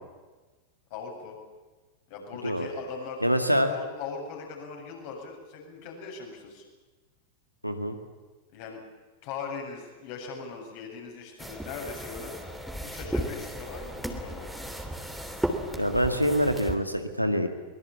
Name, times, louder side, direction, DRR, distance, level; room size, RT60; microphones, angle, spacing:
voice 1, 0.9-1.4 2.1-6.6 8.5-8.8 9.2-12.3 12.8-14.5, left 5 dB, 50° left, 1 dB, 7.4 m, -40 dB
voice 2, 3.2-3.7 7.6-8.0 15.8-17.5, equal, 90° right, 6 dB, 2.0 m, -25 dB
sound 1, 11.4-16.8, equal, ahead, 3.0 m, -35 dB
23.5 x 21.5 x 8.5 m, 1.2 s
figure-of-eight pair, 90°, 0 cm